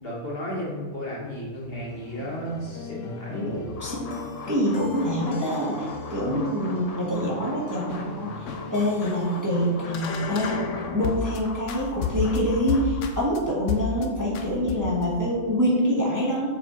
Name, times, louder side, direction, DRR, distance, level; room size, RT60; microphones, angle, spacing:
voice 1, 0.0-3.5 6.1-6.4, equal, 45° left, -3 dB, 1.3 m, -33 dB
sound 1, 1.6-11.4 11.7-13.4 13.7-14.1 14.3-15.1, left 5 dB, 70° left, 0.9 m, -34 dB
voice 2, 3.4-4.1 4.5-8.3 8.7-10.6 10.9-16.5, equal, 15° right, -5 dB, 1.0 m, -25 dB
sound 2, 3.7-13.0, left 4 dB, 90° left, 0.3 m, -42 dB
6.7 x 4.8 x 2.9 m, 1.3 s
omnidirectional pair, 1.4 m